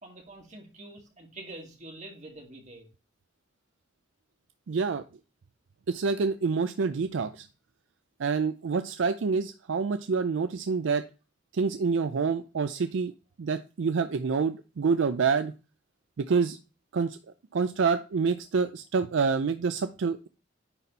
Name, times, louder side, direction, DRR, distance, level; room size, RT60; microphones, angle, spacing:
voice 1, 0.0-2.9, right 2 dB, 40° right, 0 dB, 2.3 m, -46 dB
voice 2, 4.7-5.1 5.9-7.5 8.2-11.1 11.5-13.1 13.4-15.5 16.2-16.6 16.9-17.2 17.5-20.3, right 5 dB, 70° right, 10 dB, 0.4 m, -27 dB
9.8 x 4.1 x 4.1 m, 0.32 s
head